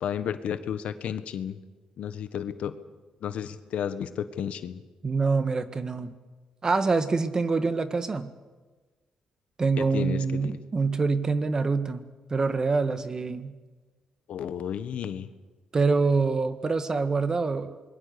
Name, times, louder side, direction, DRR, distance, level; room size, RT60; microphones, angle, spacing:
voice 1, 0.0-1.6 2.0-2.8 3.2-4.8 9.8-10.5 14.3-15.3, left 9 dB, 75° left, 11 dB, 1.4 m, -32 dB
voice 2, 5.0-6.1 6.6-8.3 9.6-12.0 12.3-13.5 15.7-17.9, right 4 dB, 30° right, 11 dB, 1.6 m, -25 dB
26.0 x 22.0 x 6.9 m, 1.3 s
cardioid pair, 100°, 2 cm